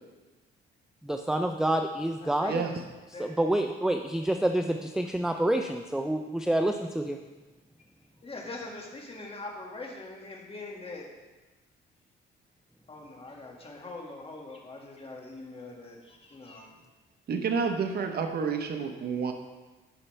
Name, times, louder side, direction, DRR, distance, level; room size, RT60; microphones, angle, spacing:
voice 1, 1.0-2.5 3.2-7.2, right 1 dB, 5° right, 5 dB, 0.4 m, -28 dB
voice 2, 2.2-2.6 3.1-3.3 8.2-11.0 12.9-16.7, left 2 dB, 30° left, -1 dB, 1.9 m, -42 dB
voice 3, 17.3-19.3, right 5 dB, 55° right, 4 dB, 1.0 m, -29 dB
13.5 x 5.5 x 3.3 m, 1.2 s
cardioid pair, 90°, 20 cm